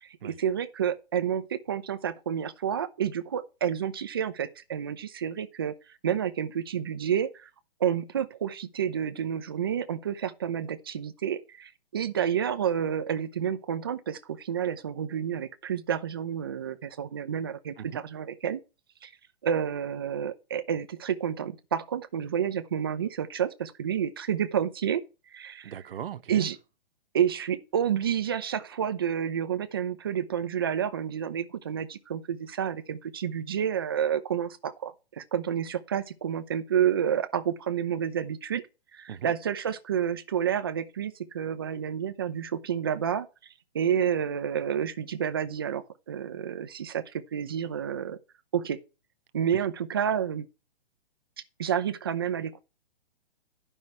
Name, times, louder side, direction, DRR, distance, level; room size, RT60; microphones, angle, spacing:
voice 1, 0.0-5.7 6.0-7.5 7.8-18.6 19.0-19.1 19.4-25.0 25.3-25.7 26.3-26.6 27.1-38.6 38.9-43.3 43.7-48.2 48.5-48.8 49.3-50.5 51.6-52.6, right 8 dB, 25° right, 0.4 m, -29 dB
voice 2, 25.6-26.5 39.1-39.3, right 9 dB, 60° right, 0.9 m, -39 dB
11.5 x 5.4 x 4.3 m
hypercardioid pair, 165°, 31 cm